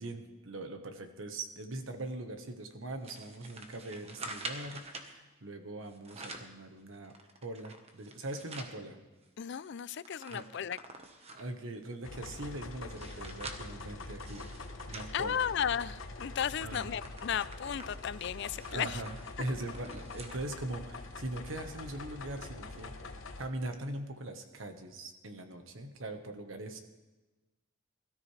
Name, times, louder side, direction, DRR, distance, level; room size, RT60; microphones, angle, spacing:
voice 1, 0.0-7.1 7.4-9.0 10.3-10.5 11.3-14.5 14.9-15.4 16.6-17.0 18.7-19.1 19.4-22.9 23.4-26.8, right 2 dB, 90° right, 6 dB, 1.4 m, -41 dB
sound 1, 3.0-5.1 5.9-6.6 7.0-8.8 9.2-9.3 9.6-11.6 12.2-15.9 16.3-16.5 16.8-20.4 20.8-20.9 21.8-21.9, right 3 dB, 30° right, 1.3 m, -47 dB
voice 2, 9.4-10.8 15.1-19.0, left 8 dB, 60° left, 17 dB, 0.4 m, -34 dB
sound 2, 12.0-23.5, left 3 dB, 85° left, 1.2 m, -45 dB
21.0 x 13.5 x 3.4 m, 1.2 s
head